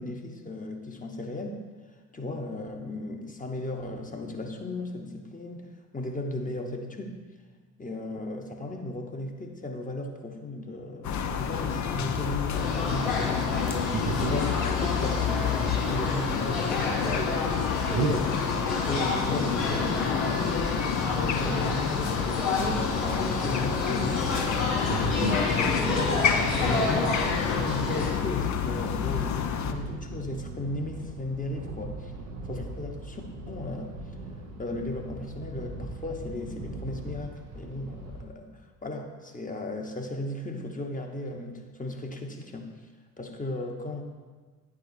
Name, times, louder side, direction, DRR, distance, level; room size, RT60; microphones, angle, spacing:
voice 1, 0.0-1.6 2.1-5.7 5.9-7.1 7.8-13.5 14.1-14.5 14.8-15.5 15.8-17.3 17.9-18.4 18.7-24.3 26.6-27.2 27.5-32.1 32.4-33.9 34.6-38.5 38.8-42.7 43.2-44.0, left 1 dB, 20° left, 3 dB, 1.1 m, -36 dB
sound 1, 11.0-29.7, left 7 dB, 50° left, 0.6 m, -29 dB
sound 2, 12.5-28.1, left 3 dB, 85° left, 1.0 m, -30 dB
voice 2, 13.9-14.4 17.9-18.2 24.9-26.0 26.6-26.9, right 8 dB, 45° right, 6 dB, 0.5 m, -32 dB
sound 3, 29.4-38.3, right 2 dB, 90° right, 0.7 m, -40 dB
10.0 x 4.8 x 2.7 m, 1.4 s
hypercardioid pair, 40°, 38 cm